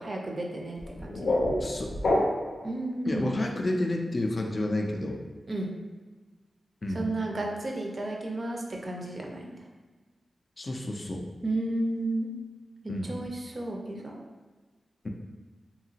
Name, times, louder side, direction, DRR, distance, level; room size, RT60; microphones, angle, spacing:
voice 1, 0.0-1.4 2.6-3.3 5.5-5.7 6.9-9.5 11.4-12.3 12.8-14.2, right 2 dB, 45° right, 0 dB, 0.5 m, -33 dB
sound 1, 0.8-2.7, left 1 dB, 90° left, 0.6 m, -27 dB
voice 2, 1.6-1.9 3.1-5.2 6.8-7.1 10.6-11.3 12.9-13.1, left 1 dB, 40° left, 2 dB, 0.3 m, -30 dB
2.8 x 2.7 x 2.7 m, 1.3 s
wide cardioid pair, 100°, 0 cm